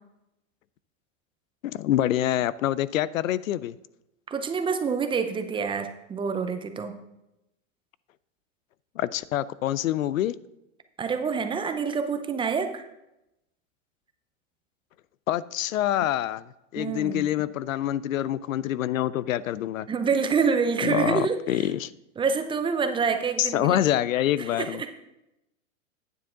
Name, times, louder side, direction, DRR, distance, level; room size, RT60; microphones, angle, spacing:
voice 1, 1.6-3.8 9.0-10.3 15.3-16.4 16.7-19.9 20.8-21.9 23.4-24.8, left 12 dB, 90° left, 20 dB, 0.5 m, -26 dB
voice 2, 4.3-7.0 11.0-12.9 16.8-17.3 19.9-21.7 22.2-23.8 24.4-25.0, right 5 dB, 15° right, 8 dB, 0.6 m, -27 dB
9.6 x 7.3 x 3.8 m, 0.89 s
hypercardioid pair, 125°, 39 cm